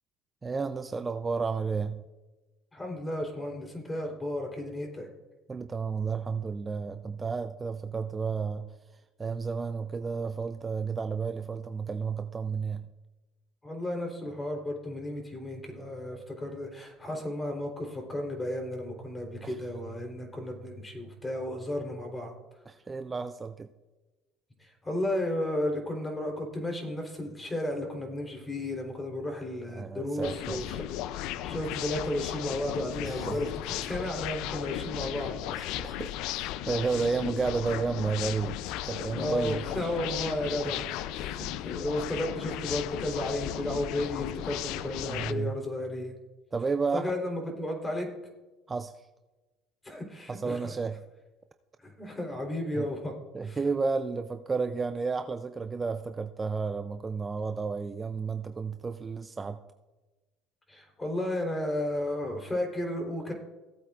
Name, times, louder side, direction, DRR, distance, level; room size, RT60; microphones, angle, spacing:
voice 1, 0.4-2.0 5.5-8.7 9.2-12.9 19.4-19.6 22.7-23.7 29.8-30.8 33.0-33.4 35.5-39.6 40.6-40.7 41.2-41.4 45.1-45.5 46.5-47.1 48.7-48.9 50.3-51.0 52.7-52.9 53.3-59.6, right 5 dB, 25° right, 9 dB, 0.5 m, -32 dB
voice 2, 2.7-5.1 13.6-22.3 24.6-30.7 31.1-35.3 39.1-46.1 46.9-48.1 49.8-50.7 51.8-53.1 53.4-53.6 60.7-63.3, left 1 dB, 15° left, 2 dB, 3.8 m, -33 dB
sound 1, 30.2-45.3, left 12 dB, 70° left, 0.5 m, -36 dB
17.5 x 8.4 x 2.5 m, 1.1 s
hypercardioid pair, 75°, 0 cm